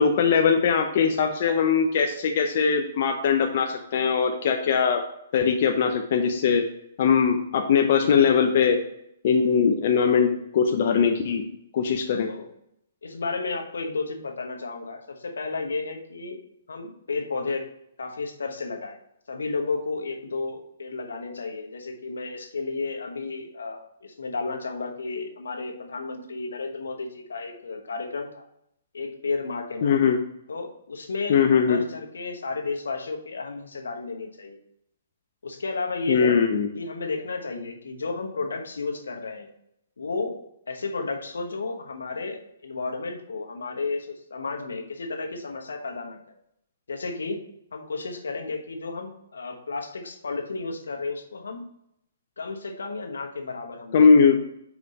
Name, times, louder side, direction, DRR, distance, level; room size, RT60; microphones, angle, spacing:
voice 1, 0.0-5.0 5.3-6.6 7.0-8.8 9.2-11.5 11.7-12.3 29.8-30.2 31.3-31.8 36.1-36.7 53.9-54.4, left 6 dB, 55° left, 4 dB, 0.6 m, -21 dB
voice 2, 13.0-16.4 16.7-17.7 18.0-19.0 19.3-28.4 28.9-29.9 30.5-31.4 31.7-34.6 35.4-36.4 36.7-39.5 40.0-40.4 40.7-46.2 46.9-47.4 47.7-51.7 52.4-54.0, left 3 dB, 90° left, 3 dB, 1.1 m, -32 dB
4.9 x 4.9 x 4.1 m, 0.77 s
hypercardioid pair, 145°, 0 cm